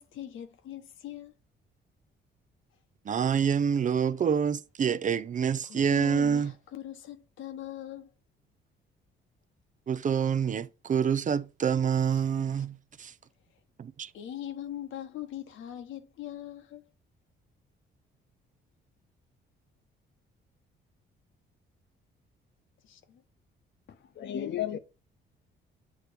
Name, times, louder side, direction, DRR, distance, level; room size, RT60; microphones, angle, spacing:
voice 1, 0.0-1.3 5.6-8.1 12.1-12.2 14.1-16.8 22.8-23.2, left 11 dB, 80° left, 1.2 m, -41 dB
voice 2, 3.1-6.5 9.9-13.1 13.8-14.1, right 7 dB, 40° right, 0.5 m, -27 dB
voice 3, 24.2-24.8, left 10 dB, 60° left, 0.9 m, -32 dB
8.3 x 3.1 x 5.1 m
cardioid pair, 90°, 20 cm